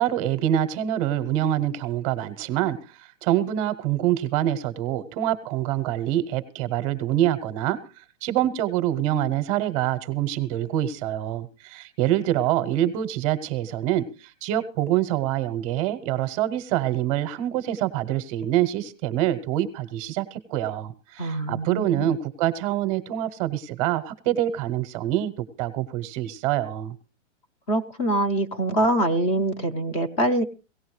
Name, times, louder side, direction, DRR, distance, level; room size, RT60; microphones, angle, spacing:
voice 1, 0.0-26.9, right 12 dB, 30° right, 11 dB, 0.8 m, -25 dB
voice 2, 21.2-22.1 27.7-30.4, right 1 dB, 25° left, 7 dB, 0.7 m, -24 dB
17.5 x 15.5 x 3.2 m, 0.33 s
hypercardioid pair, 160°, 37 cm